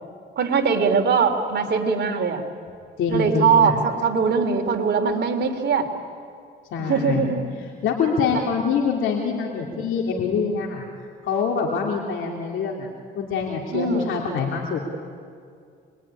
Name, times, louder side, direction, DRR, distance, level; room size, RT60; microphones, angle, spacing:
voice 1, 0.4-2.5 3.1-5.9 6.8-7.4 8.3-8.4 13.7-14.1, right 5 dB, 60° right, 3 dB, 3.5 m, -21 dB
voice 2, 3.0-3.8 6.7-7.3 7.8-10.9 11.2-12.9 13.1-14.8, left 5 dB, 80° left, -1 dB, 3.0 m, -25 dB
26.5 x 22.0 x 10.0 m, 2.3 s
cardioid pair, 90°, 20 cm